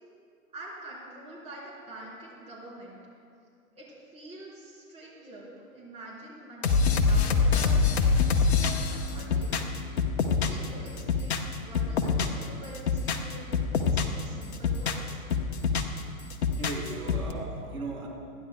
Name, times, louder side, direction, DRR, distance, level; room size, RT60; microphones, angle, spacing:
voice 1, 0.5-3.0 3.8-8.3 8.5-9.5 10.5-15.2, right 1 dB, 15° right, -6 dB, 3.6 m, -46 dB
sound 1, 6.6-10.7 11.0-12.4 12.7-14.2 14.5-16.0 16.3-17.3, left 5 dB, 45° left, 1.0 m, -25 dB
voice 2, 16.2-18.1, right 3 dB, 80° right, -2 dB, 3.3 m, -38 dB
28.5 x 10.5 x 2.2 m, 2.4 s
figure-of-eight pair, 125°, 43 cm